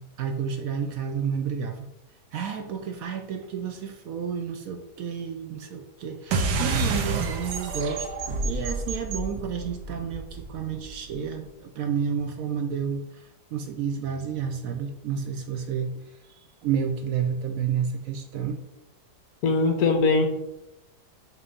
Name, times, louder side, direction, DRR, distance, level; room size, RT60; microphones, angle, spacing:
voice 1, 0.0-1.9 2.3-8.1 8.4-16.1 16.6-18.6, right 7 dB, 70° right, 5 dB, 0.9 m, -30 dB
sound 1, 6.3-11.2, right 3 dB, 90° right, 1.4 m, -29 dB
voice 2, 19.4-20.3, left 3 dB, 65° left, 4 dB, 1.4 m, -21 dB
6.3 x 3.0 x 5.2 m, 0.88 s
omnidirectional pair, 1.8 m